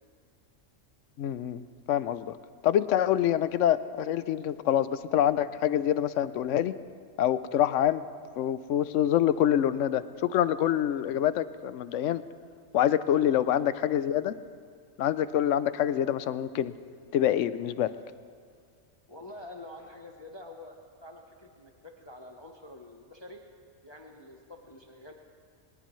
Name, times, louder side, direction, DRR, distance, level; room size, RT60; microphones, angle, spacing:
voice 1, 1.2-1.6 1.9-2.3 2.6-6.7 7.2-8.0 8.4-12.2 12.7-14.3 15.0-16.7 17.1-17.9, left 11 dB, 85° left, 14 dB, 0.9 m, -26 dB
voice 2, 13.1-13.8 19.1-23.4 23.8-25.1, left 1 dB, 25° left, 2 dB, 0.9 m, -47 dB
22.0 x 20.0 x 3.1 m, 2.1 s
omnidirectional pair, 1.2 m